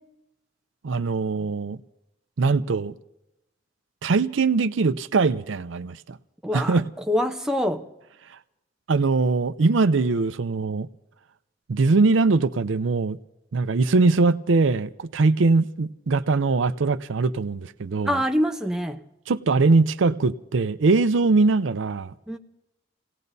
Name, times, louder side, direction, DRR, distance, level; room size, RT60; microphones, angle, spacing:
voice 1, 0.8-1.8 2.4-2.9 4.0-6.2 6.5-6.9 8.9-10.9 11.7-13.2 13.5-18.2 19.3-22.1, right 3 dB, 75° right, 0.5 m, -21 dB
voice 2, 6.4-7.8 18.1-19.0 22.3-22.4, equal, 5° right, 0.7 m, -25 dB
29.5 x 17.5 x 2.7 m
head